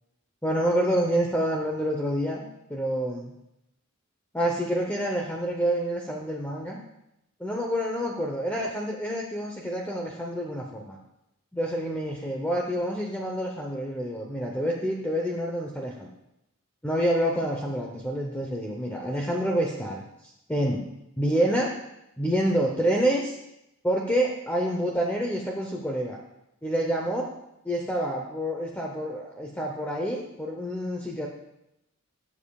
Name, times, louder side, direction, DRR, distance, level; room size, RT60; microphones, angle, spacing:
voice 1, 0.4-2.4 2.7-3.3 4.3-6.8 7.4-11.0 11.5-16.1 16.8-20.8 21.2-21.7 22.2-23.4 23.8-26.2 26.6-27.3 27.6-31.3, right 1 dB, 10° left, -1 dB, 0.8 m, -27 dB
19.5 x 7.4 x 2.4 m, 0.86 s
head